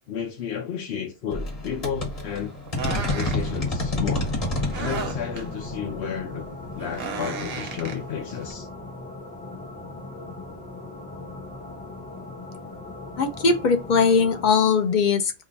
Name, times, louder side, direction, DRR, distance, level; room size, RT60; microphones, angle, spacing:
voice 1, 0.1-2.5 3.0-4.3 4.8-6.5 6.7-8.7, left 7 dB, 75° left, 0.9 m, -32 dB
sound 1, 1.3-7.8, left 2 dB, 35° left, 1.3 m, -30 dB
sound 2, 2.0-8.5, right 5 dB, 70° right, 0.9 m, -36 dB
sound 3, 2.7-14.5, left 2 dB, 10° left, 0.6 m, -39 dB
voice 2, 13.2-15.4, left 5 dB, 55° left, 0.7 m, -20 dB
2.9 x 2.3 x 3.9 m
omnidirectional pair, 1.1 m